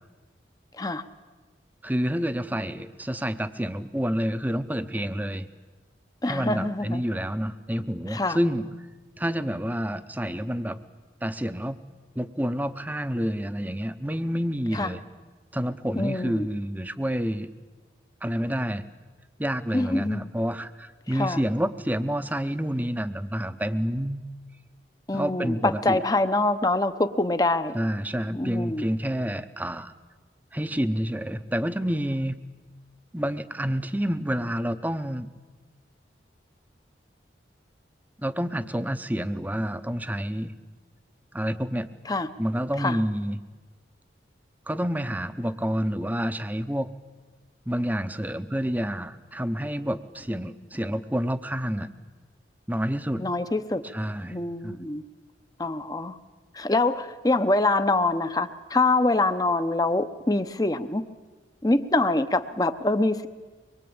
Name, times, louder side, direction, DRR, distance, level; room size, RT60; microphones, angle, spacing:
voice 1, 1.8-5.5 6.3-8.7 9.2-10.8 11.2-11.8 12.1-15.0 15.5-17.5 18.2-18.8 19.4-24.3 25.1-26.0 27.7-29.9 30.5-32.4 33.1-35.3 38.2-40.5 41.3-41.9 42.4-43.4 44.7-46.9 47.7-51.9 52.7-53.2 53.8-54.8, equal, 10° right, 11 dB, 0.8 m, -28 dB
voice 2, 6.2-7.0 8.1-8.4 14.7-14.9 16.0-16.5 19.7-20.3 21.1-21.4 25.1-27.7 28.3-28.9 42.1-42.3 42.8-43.0 53.2-53.8 54.3-55.0 55.6-56.2 56.5-61.0 61.6-63.3, left 2 dB, 20° left, 10 dB, 0.8 m, -25 dB
24.5 x 22.5 x 8.8 m, 1.3 s
head